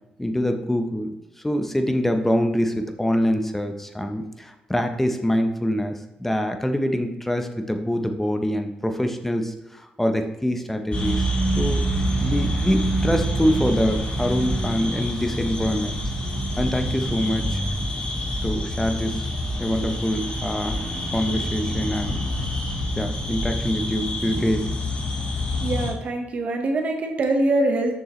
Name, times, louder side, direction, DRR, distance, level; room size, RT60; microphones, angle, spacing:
voice 1, 0.2-1.2 1.4-11.3 11.6-11.8 12.2-16.0 16.6-17.6 18.4-19.3 19.6-20.8 21.1-22.3 23.0-24.6, equal, 10° left, 6 dB, 0.9 m, -25 dB
sound 1, 10.9-25.9, equal, 35° left, 2.2 m, -26 dB
voice 2, 25.6-27.9, right 2 dB, 50° right, 3 dB, 1.3 m, -23 dB
7.1 x 6.4 x 3.2 m, 1.0 s
cardioid pair, 95°, 3 cm